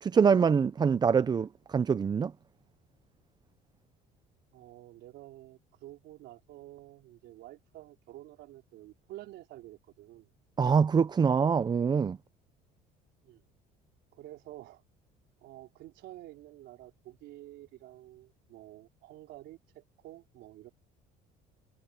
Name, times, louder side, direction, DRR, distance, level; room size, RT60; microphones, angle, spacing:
voice 1, 0.0-2.3 10.6-12.2, right 6 dB, 25° right, 0.5 m, -24 dB
voice 2, 4.5-10.3 13.2-13.4 14.1-14.8 15.4-20.7, right 15 dB, 70° right, 4.5 m, -50 dB
cardioid pair, 115°, 19 cm